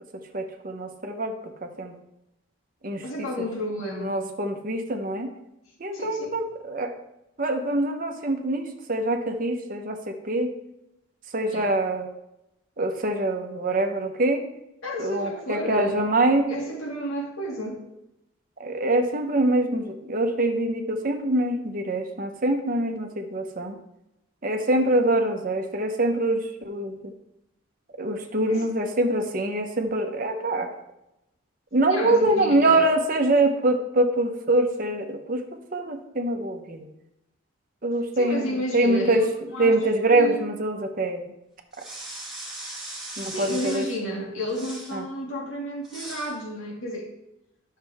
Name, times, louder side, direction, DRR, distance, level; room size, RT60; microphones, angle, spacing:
voice 1, 0.3-1.3 1.6-2.0 2.8-3.5 4.0-5.3 5.8-6.9 7.4-10.5 11.3-12.1 12.8-14.4 15.0-16.5 18.6-23.8 24.4-27.0 28.0-30.7 31.7-35.4 35.7-36.9 37.8-39.2 39.6-41.3 43.2-43.8 44.9-45.0, right 2 dB, 40° right, 4 dB, 1.0 m, -24 dB
voice 2, 3.0-4.2 5.9-6.4 11.5-11.7 14.8-16.0 16.5-17.8 28.5-28.7 31.9-32.9 38.1-39.3 39.5-39.7 40.1-40.5 43.2-47.1, equal, 85° left, -1 dB, 2.1 m, -31 dB
sound 1, 41.7-44.0 44.5-45.0 45.8-46.3, right 2 dB, 5° right, 2.1 m, -38 dB
11.0 x 6.6 x 3.5 m, 0.88 s
head